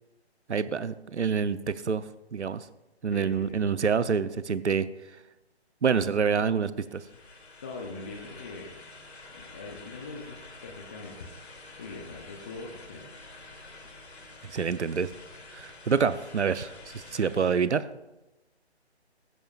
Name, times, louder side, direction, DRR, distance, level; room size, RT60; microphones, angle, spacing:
voice 1, 0.5-2.0 2.3-2.7 3.0-4.9 5.8-7.0 14.4-15.1 15.5-17.9, right 6 dB, 80° right, 14 dB, 0.7 m, -27 dB
voice 2, 3.1-3.6 7.6-8.8 9.3-11.3 11.8-13.2, left 3 dB, 15° left, 0 dB, 0.5 m, -42 dB
sound 1, 6.8-17.7, left 3 dB, 70° left, 2.5 m, -48 dB
15.0 x 11.0 x 2.4 m, 1.0 s
figure-of-eight pair, 145°, 34 cm